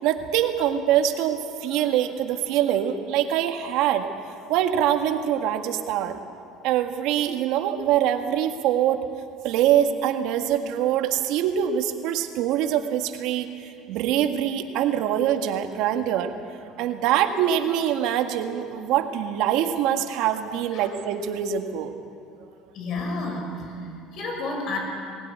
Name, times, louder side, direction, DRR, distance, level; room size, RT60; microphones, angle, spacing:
voice 1, 0.0-4.1 4.5-6.2 6.6-9.0 9.4-13.5 13.9-16.3 16.8-21.9, right 10 dB, 70° right, 6 dB, 1.8 m, -24 dB
voice 2, 22.7-24.8, left 2 dB, 55° left, 2 dB, 6.1 m, -31 dB
21.0 x 17.0 x 9.5 m, 2.6 s
cardioid pair, 125°, 0 cm